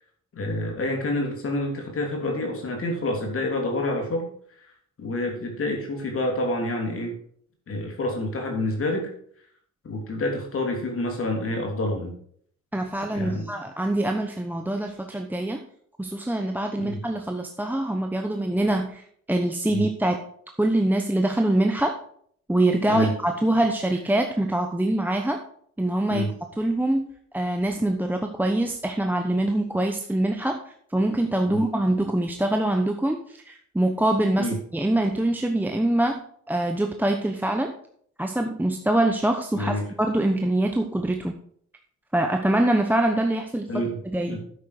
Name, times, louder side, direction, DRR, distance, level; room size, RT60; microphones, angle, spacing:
voice 1, 0.3-4.3 5.0-7.1 7.7-9.1 9.8-12.1 13.1-13.5 16.8-17.0 19.7-19.9 22.9-23.1 26.1-26.3 31.5-31.6 34.4-34.6 39.5-39.9 43.7-44.0 44.3-44.4, left 1 dB, 45° left, 1 dB, 3.0 m, -28 dB
voice 2, 12.7-15.6 16.0-20.2 20.6-21.9 22.5-25.4 25.8-26.3 26.6-36.2 36.5-37.7 38.2-41.3 42.1-43.8 44.1-44.4, right 1 dB, 5° right, 4 dB, 0.9 m, -24 dB
9.4 x 7.5 x 4.9 m, 0.62 s
cardioid pair, 90°, 30 cm